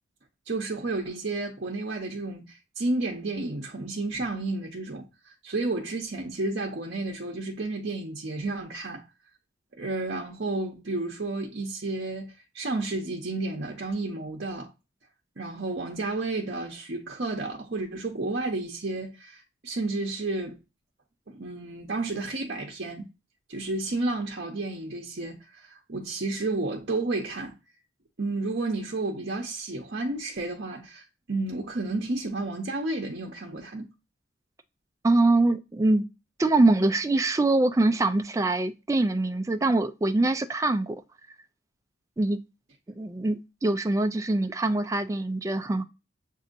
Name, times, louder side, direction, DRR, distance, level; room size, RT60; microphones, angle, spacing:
voice 1, 0.5-9.0 9.8-12.3 12.5-14.7 15.4-20.6 21.3-23.1 23.5-27.5 28.2-33.9, right 2 dB, 55° right, 0.7 m, -31 dB
voice 2, 35.0-36.1 36.4-41.0 42.2-42.4 43.0-45.8, right 2 dB, 15° right, 0.3 m, -24 dB
7.0 x 2.7 x 2.5 m
head